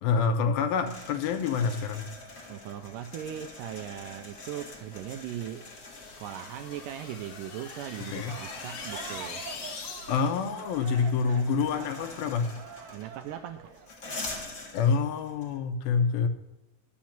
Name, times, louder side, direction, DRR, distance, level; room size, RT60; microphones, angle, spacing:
voice 1, 0.0-2.1 8.1-8.3 10.1-12.6 14.7-16.3, left 5 dB, 80° left, 8 dB, 2.6 m, -27 dB
sound 1, 0.9-15.6, left 2 dB, 40° left, 1.1 m, -45 dB
voice 2, 2.5-5.7 6.2-9.5 12.9-13.7, right 11 dB, 85° right, 7 dB, 1.9 m, -39 dB
sound 2, 4.5-10.5, left 5 dB, 60° left, 2.5 m, -44 dB
sound 3, 8.3-13.9, right 6 dB, 70° right, 1.8 m, -46 dB
11.5 x 6.3 x 7.2 m, 0.94 s
omnidirectional pair, 4.2 m